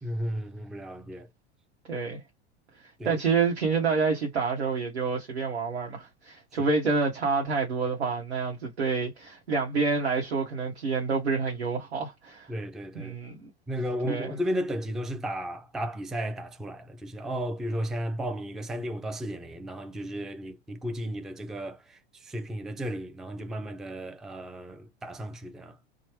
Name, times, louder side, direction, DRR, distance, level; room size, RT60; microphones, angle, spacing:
voice 1, 0.0-1.3 3.0-3.2 6.6-6.7 12.5-13.1 13.7-25.8, equal, ahead, 0.4 m, -34 dB
voice 2, 1.9-2.2 3.0-12.5 12.9-13.5 14.1-14.4, right 4 dB, 80° right, 1.0 m, -28 dB
3.1 x 2.2 x 3.0 m
figure-of-eight pair, 80°, 32 cm